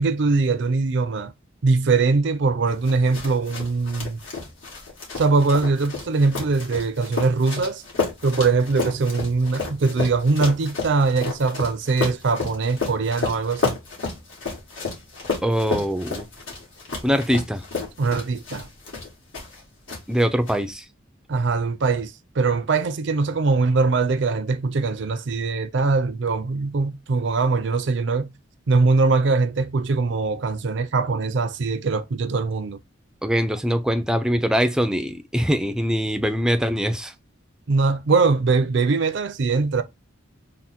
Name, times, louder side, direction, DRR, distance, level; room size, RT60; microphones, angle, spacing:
voice 1, 0.0-1.3 1.6-4.2 5.2-7.8 8.2-13.8 18.0-18.7 21.3-28.3 28.7-32.8 37.7-39.8, right 4 dB, 60° right, 0.5 m, -22 dB
sound 1, 2.8-19.6 19.9-20.5, left 4 dB, 75° left, 1.7 m, -31 dB
voice 2, 15.4-16.3 17.0-17.6 20.1-20.9 33.2-37.1, equal, 5° right, 0.4 m, -22 dB
3.7 x 2.1 x 4.2 m
head